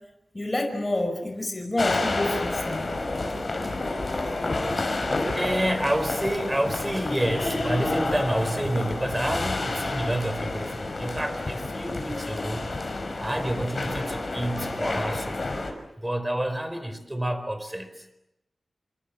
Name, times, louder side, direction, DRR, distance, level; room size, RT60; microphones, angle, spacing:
voice 1, 0.3-2.9, left 1 dB, 20° left, 3 dB, 5.5 m, -28 dB
sound 1, 1.8-15.7, left 2 dB, 50° left, 5.6 m, -29 dB
voice 2, 5.3-12.6 13.2-15.4 16.0-17.9, right 1 dB, 10° right, 10 dB, 4.4 m, -28 dB
29.5 x 25.5 x 7.4 m, 0.91 s
wide cardioid pair, 95°, 0 cm